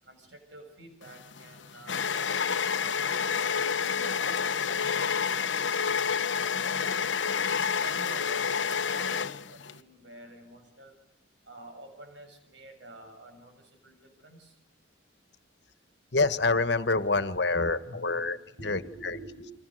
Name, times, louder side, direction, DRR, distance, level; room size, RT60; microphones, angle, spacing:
voice 1, 0.0-2.1 2.6-5.5 6.2-6.7 7.6-11.0 11.4-14.6 17.1-19.5, right 2 dB, 75° right, 5 dB, 7.4 m, -49 dB
sound 1, 1.1-9.8, left 6 dB, 85° left, 1.0 m, -29 dB
voice 2, 16.1-18.4 18.6-19.1, left 3 dB, 65° left, 12 dB, 1.5 m, -26 dB
30.0 x 24.5 x 6.5 m, 0.74 s
head